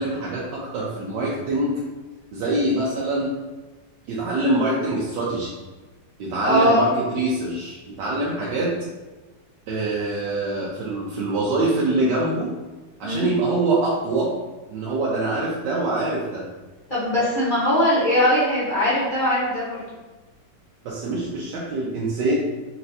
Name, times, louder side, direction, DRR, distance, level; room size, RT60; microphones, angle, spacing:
voice 1, 0.0-1.7 2.3-3.3 4.1-5.5 6.2-8.7 9.7-12.5 13.0-14.3 14.7-16.4 20.8-22.4, right 2 dB, 75° right, -5 dB, 1.3 m, -24 dB
voice 2, 6.4-6.8 13.0-13.3 16.9-19.8, equal, 40° left, -11 dB, 0.8 m, -20 dB
4.2 x 3.1 x 2.7 m, 1.2 s
omnidirectional pair, 2.0 m